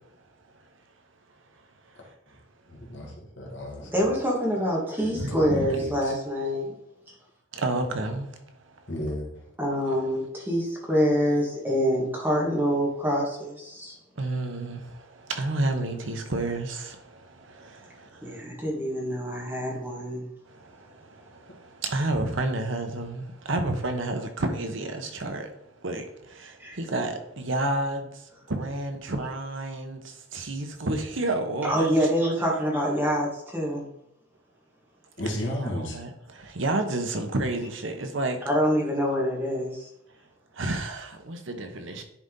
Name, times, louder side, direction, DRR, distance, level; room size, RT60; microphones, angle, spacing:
voice 1, 2.7-4.1 5.0-5.4 5.7-6.1 8.9-9.3 35.2-36.0, equal, 60° left, 2.0 m, -33 dB
voice 2, 3.8-6.7 9.6-14.0 18.2-20.3 26.6-26.8 31.6-33.9 38.4-39.9, equal, 10° right, 1.8 m, -26 dB
voice 3, 5.2-5.7 7.5-8.4 14.2-18.4 20.5-25.5 25.8-31.9 35.3-38.4 40.5-42.0, right 2 dB, 70° right, 1.0 m, -31 dB
10.0 x 4.1 x 3.8 m
head